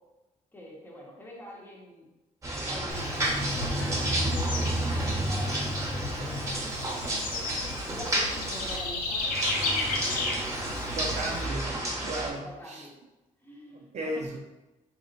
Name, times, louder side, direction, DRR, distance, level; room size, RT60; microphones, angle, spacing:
voice 1, 0.5-2.1 2.7-7.5 7.8-10.1 12.4-13.0 13.4-14.2, equal, 15° left, -3 dB, 0.9 m, -45 dB
sound 1, 2.4-8.8 9.2-12.3, right 1 dB, 20° right, 0.9 m, -30 dB
Bird / Insect, 2.9-11.5, left 2 dB, 75° left, 0.7 m, -34 dB
voice 2, 10.9-12.9 13.7-14.4, right 1 dB, 50° right, 0 dB, 0.5 m, -35 dB
4.2 x 2.1 x 3.8 m, 1.1 s
cardioid pair, 100°, 14 cm